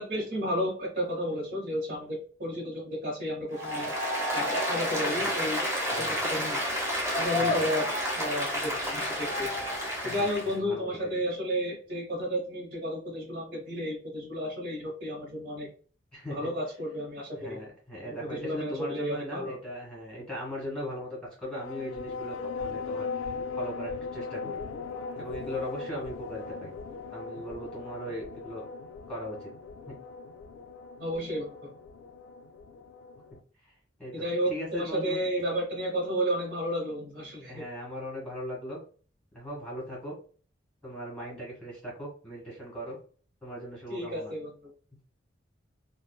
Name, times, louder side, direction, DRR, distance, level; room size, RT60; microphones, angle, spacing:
voice 1, 0.0-3.9 4.3-5.7 6.0-6.6 7.2-7.9 8.2-9.5 10.0-15.7 16.3-17.6 18.0-19.6 31.0-31.7 34.1-37.6 43.9-44.7, equal, 50° right, -5 dB, 0.9 m, -32 dB
Applause, 3.5-10.5, equal, 15° right, 0.7 m, -30 dB
voice 2, 5.9-6.2 7.4-7.6 10.0-11.1 16.1-16.5 17.4-24.6 25.2-26.7 27.1-28.6 29.1-29.5 29.9-30.0 33.6-33.7 34.0-35.2 37.5-38.8 39.3-40.1 40.8-43.0 43.4-44.3, equal, 5° left, -5 dB, 1.5 m, -39 dB
sound 1, 21.5-33.4, left 4 dB, 85° left, 0.3 m, -39 dB
3.1 x 2.0 x 2.2 m, 0.41 s
head